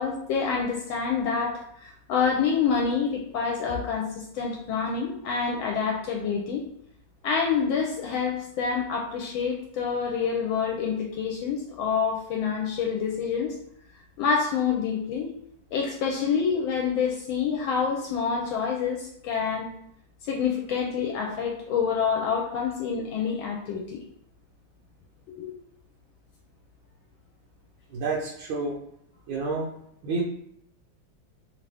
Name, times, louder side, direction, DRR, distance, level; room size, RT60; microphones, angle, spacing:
voice 1, 0.0-6.6 7.2-13.5 14.2-15.3 15.7-19.7 20.2-24.0 25.4-25.5, left 6 dB, 80° left, 0 dB, 1.3 m, -27 dB
voice 2, 27.9-28.8 29.3-29.7 30.0-30.2, right 3 dB, 80° right, -3 dB, 1.4 m, -29 dB
3.3 x 2.6 x 3.3 m, 0.71 s
omnidirectional pair, 2.2 m